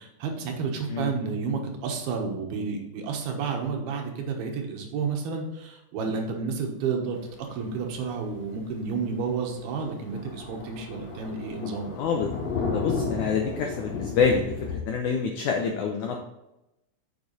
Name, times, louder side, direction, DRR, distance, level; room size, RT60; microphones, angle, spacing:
voice 1, 0.0-11.9, right 5 dB, 80° right, 2 dB, 3.2 m, -31 dB
Thunder, 7.8-8.0 8.4-8.5 8.8-8.9 9.2-9.3 9.6-14.8, left 4 dB, 60° left, 1.8 m, -33 dB
voice 2, 12.0-12.3 12.7-14.5 14.9-16.2, left 6 dB, 80° left, 2 dB, 1.7 m, -26 dB
7.0 x 6.7 x 4.0 m, 0.93 s
omnidirectional pair, 4.4 m